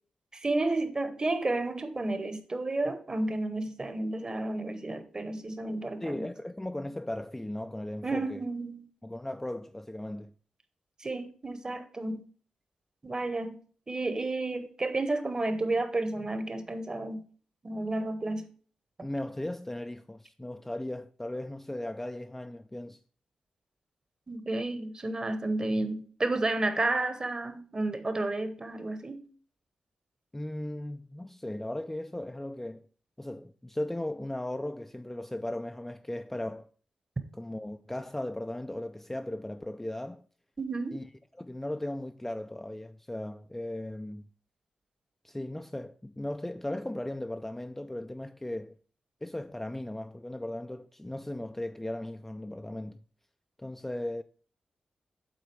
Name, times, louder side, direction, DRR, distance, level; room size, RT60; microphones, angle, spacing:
voice 1, 0.3-6.3 8.0-8.8 11.0-12.2 13.0-13.6 13.9-17.2 17.6-18.5 24.3-29.2 40.6-41.0, right 2 dB, 30° right, 1.0 m, -31 dB
voice 2, 6.0-8.4 9.0-10.3 19.0-23.0 30.3-32.9 33.2-36.7 37.3-40.2 40.9-41.1 41.4-44.3 45.2-48.8 49.2-53.0 53.6-54.2, left 1 dB, 10° left, 0.3 m, -37 dB
8.1 x 3.9 x 4.6 m
cardioid pair, 75°, 2 cm